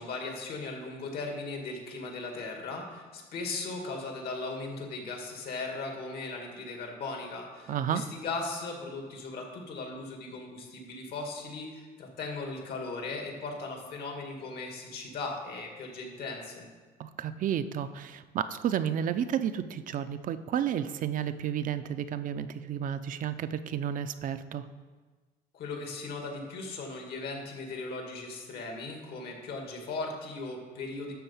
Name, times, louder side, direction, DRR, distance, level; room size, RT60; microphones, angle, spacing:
voice 1, 0.0-16.7 25.5-31.1, left 3 dB, 70° left, 2 dB, 2.0 m, -38 dB
voice 2, 7.7-8.0 17.0-24.7, right 9 dB, 55° right, 11 dB, 0.5 m, -31 dB
11.5 x 3.9 x 7.1 m, 1.4 s
cardioid pair, 110°, 17 cm